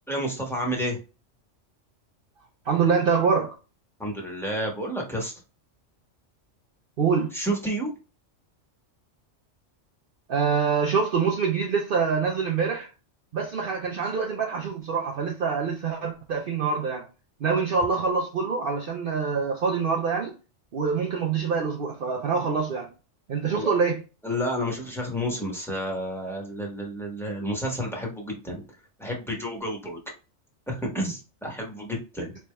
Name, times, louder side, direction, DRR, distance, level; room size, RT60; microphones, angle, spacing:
voice 1, 0.1-1.0 4.0-5.3 7.3-7.9 23.5-23.7 24.2-28.6 29.0-30.0 30.7-32.4, equal, ahead, 1.1 m, -30 dB
voice 2, 2.7-3.5 7.0-7.3 10.3-12.9 13.3-17.1 17.4-20.3 20.7-22.9 23.3-24.0, right 5 dB, 55° right, 0.7 m, -25 dB
4.3 x 3.4 x 2.2 m
omnidirectional pair, 1.3 m